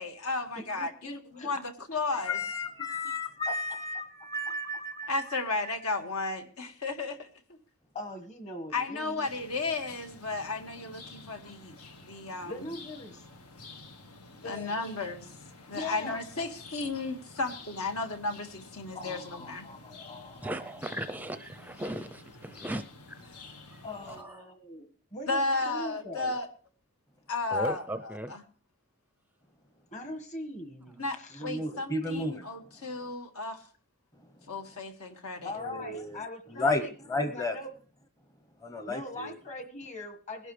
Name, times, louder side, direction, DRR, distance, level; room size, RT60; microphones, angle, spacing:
voice 1, 0.0-2.4 5.1-7.6 8.7-11.7 12.0-12.6 14.5-15.3 15.7-19.7 25.3-26.5 27.3-28.4 31.0-31.2 31.4-33.6 34.5-35.5, left 3 dB, 75° left, 1.9 m, -34 dB
voice 2, 0.5-1.6 3.5-3.6 7.9-9.3 11.4-11.5 12.4-13.2 14.4-14.8 15.7-16.2 18.9-20.5 23.8-26.3 29.9-31.4 35.4-36.9 37.2-37.7 38.8-40.5, left 2 dB, 30° left, 1.6 m, -41 dB
voice 3, 2.1-5.4 31.4-32.4 35.6-36.2 36.5-37.6 38.6-39.3, left 2 dB, 15° left, 0.9 m, -33 dB
sound 1, 9.2-24.2, left 3 dB, 90° left, 1.7 m, -50 dB
voice 4, 20.4-23.2 23.7-24.5 27.5-28.4, right 1 dB, 10° right, 0.5 m, -37 dB
21.0 x 11.5 x 3.3 m
head